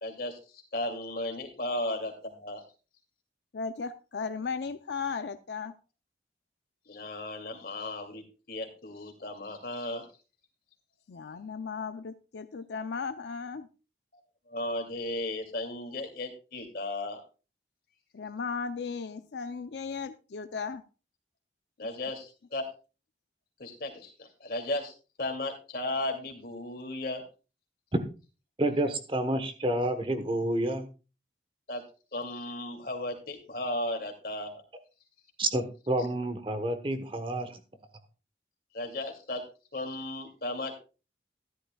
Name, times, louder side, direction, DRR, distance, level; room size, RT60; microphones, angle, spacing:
voice 1, 0.0-2.6 6.9-10.1 14.5-17.2 21.8-22.7 23.6-27.2 31.7-31.8 32.1-34.6 38.7-39.4 39.7-40.8, left 1 dB, 55° left, 3 dB, 2.5 m, -35 dB
voice 2, 3.5-5.7 11.1-13.7 18.1-20.8, left 5 dB, 75° left, 10 dB, 0.5 m, -36 dB
voice 3, 28.6-30.9 35.4-37.6, right 1 dB, 30° right, 9 dB, 1.1 m, -29 dB
13.5 x 11.5 x 2.3 m, 0.32 s
head